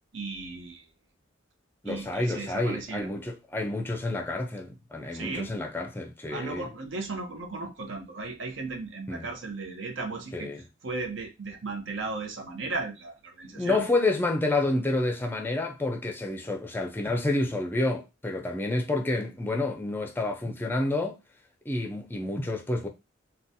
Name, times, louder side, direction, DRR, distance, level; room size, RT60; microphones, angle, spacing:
voice 1, 0.1-0.9 1.8-3.1 5.1-5.5 6.3-10.5 10.8-13.8, right 3 dB, 70° right, 0.8 m, -36 dB
voice 2, 1.8-6.7 9.1-9.3 10.3-10.6 13.5-21.2 21.7-22.9, left 2 dB, 10° left, 0.5 m, -29 dB
3.8 x 2.3 x 2.6 m
head